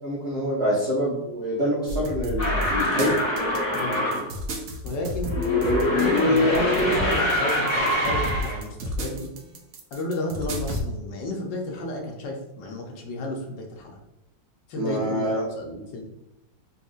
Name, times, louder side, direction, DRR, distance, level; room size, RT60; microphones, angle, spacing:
voice 1, 0.0-3.2 14.8-15.4, equal, 45° right, -8 dB, 0.9 m, -26 dB
sound 1, 1.9-10.8, equal, 70° right, 0.7 m, -32 dB
sound 2, 2.4-4.2 5.2-8.6, left 1 dB, 55° left, 1.7 m, -23 dB
voice 2, 3.7-4.1 4.8-5.3 5.9-9.3 9.9-14.0 14.7-16.0, left 1 dB, 75° left, 1 dB, 1.4 m, -32 dB
4.1 x 2.7 x 2.4 m, 0.92 s
omnidirectional pair, 2.0 m